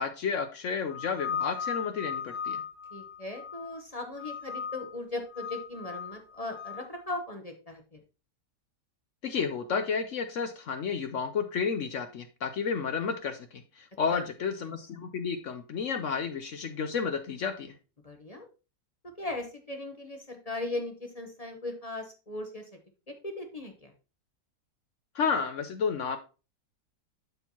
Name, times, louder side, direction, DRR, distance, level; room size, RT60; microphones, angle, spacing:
voice 1, 0.0-2.6 9.2-17.7 25.1-26.2, left 6 dB, 60° left, 8 dB, 0.8 m, -31 dB
sound 1, 0.9-3.8 4.2-4.9 5.3-6.8, left 7 dB, 85° left, 3.4 m, -37 dB
voice 2, 2.9-8.0 14.1-14.2 18.0-18.5 19.2-22.7 23.1-23.9, left 2 dB, 30° left, 4 dB, 0.8 m, -38 dB
11.5 x 4.4 x 2.9 m, 0.32 s
omnidirectional pair, 1.9 m